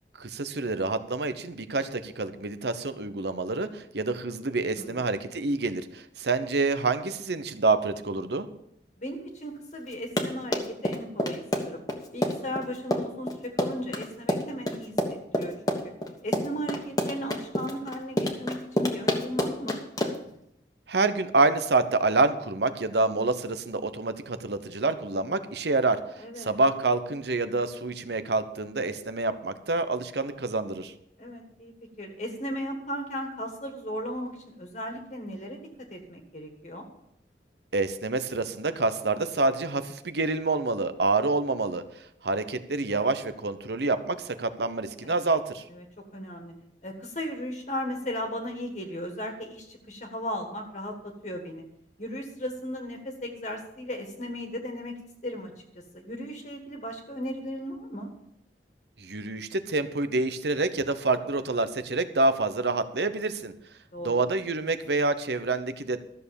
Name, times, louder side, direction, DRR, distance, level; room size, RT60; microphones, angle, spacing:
voice 1, 0.2-8.5 20.9-26.0 26.4-30.9 37.7-41.8 42.2-45.6 59.0-63.5 64.0-66.0, right 3 dB, 70° right, 11 dB, 0.9 m, -27 dB
voice 2, 4.7-5.1 9.0-11.8 12.1-15.9 16.2-19.8 26.2-26.5 31.2-35.6 35.9-36.8 45.0-45.3 45.7-45.8 46.1-46.5 46.8-50.9 51.2-51.6 52.0-54.9 55.2-55.5 55.9-58.1 63.9-64.2, equal, 40° left, 3 dB, 1.7 m, -36 dB
Run, 9.9-20.3, left 1 dB, 20° left, 1.3 m, -28 dB
13.5 x 6.8 x 7.0 m, 0.76 s
head